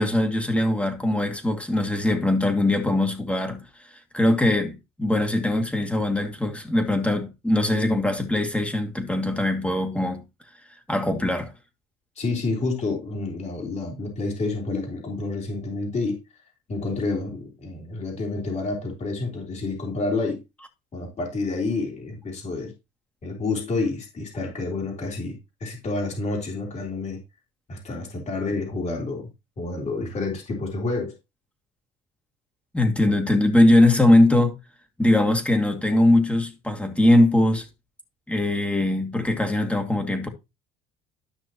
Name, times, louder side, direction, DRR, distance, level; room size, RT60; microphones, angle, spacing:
voice 1, 0.0-3.6 4.1-10.2 10.9-11.5 32.7-34.6 35.0-37.7 38.3-40.3, left 1 dB, 5° left, 2.3 m, -21 dB
voice 2, 12.2-16.2 16.7-20.4 20.9-22.7 23.2-27.2 27.7-29.3 29.6-31.1, left 3 dB, 35° left, 3.8 m, -29 dB
13.0 x 6.1 x 3.0 m
cardioid pair, 100°, 19 cm